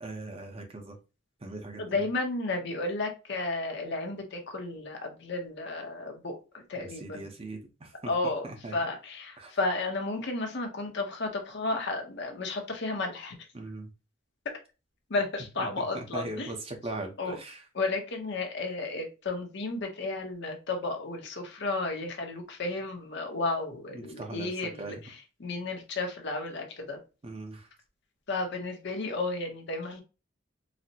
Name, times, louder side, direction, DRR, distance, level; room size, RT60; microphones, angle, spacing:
voice 1, 0.0-0.9 1.4-1.8 6.8-7.9 8.4-8.7 9.4-9.5 13.5-13.9 15.6-17.6 23.9-24.5 24.8-25.0 27.2-27.7, right 2 dB, 30° right, 0.7 m, -40 dB
voice 2, 1.8-6.4 6.7-7.3 8.1-13.4 15.1-16.5 17.2-17.4 17.7-27.0 28.3-30.0, left 2 dB, 60° left, 0.8 m, -33 dB
4.0 x 2.1 x 2.7 m
head